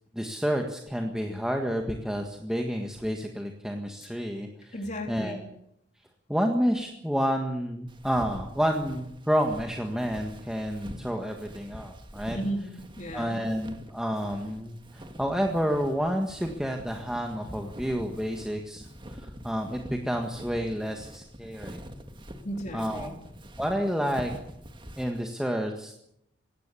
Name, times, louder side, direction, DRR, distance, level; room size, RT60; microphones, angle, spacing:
voice 1, 0.1-4.7 5.1-5.4 6.3-12.4 13.1-21.8 22.7-23.1 23.6-24.3 25.0-26.0, equal, 5° right, 2 dB, 1.7 m, -29 dB
voice 2, 4.7-5.4 12.3-13.4 22.4-23.2, right 1 dB, 40° left, 2 dB, 3.5 m, -35 dB
Walk footsteps, 7.9-25.2, equal, 25° right, 2.0 m, -45 dB
21.5 x 17.0 x 8.5 m, 0.78 s
head